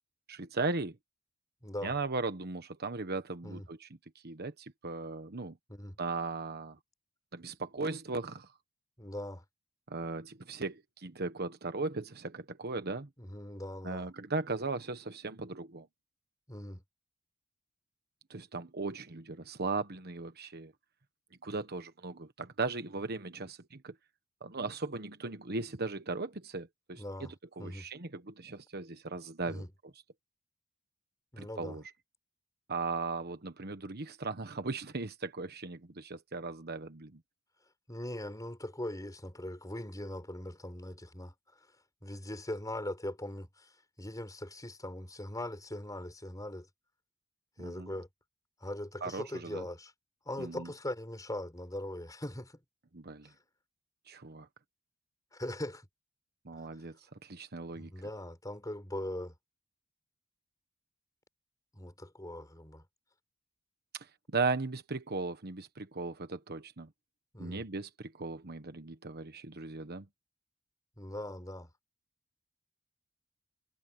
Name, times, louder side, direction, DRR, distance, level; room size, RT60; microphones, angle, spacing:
voice 1, 0.3-1.0 1.8-3.9 4.2-5.6 6.0-6.8 7.3-8.5 9.9-13.1 13.8-15.9 18.3-20.7 21.4-23.9 24.4-29.9 31.4-31.8 32.7-37.2 47.6-47.9 49.0-49.6 50.4-50.7 52.9-53.3 54.1-54.5 56.4-57.0 57.2-57.9 63.9-66.9 67.4-70.1, right 3 dB, 50° right, 1.3 m, -37 dB
voice 2, 1.6-2.0 3.4-3.7 5.7-6.0 9.0-9.4 13.2-14.1 16.5-16.8 27.0-27.3 27.6-27.9 29.5-29.7 31.3-31.8 37.9-41.3 42.0-43.7 44.0-46.7 47.6-48.1 48.6-49.9 50.3-52.6 53.2-53.3 55.3-55.9 56.5-56.6 57.8-59.3 61.7-62.8 67.3-67.7 71.0-71.7, left 1 dB, 15° left, 5.2 m, -40 dB
head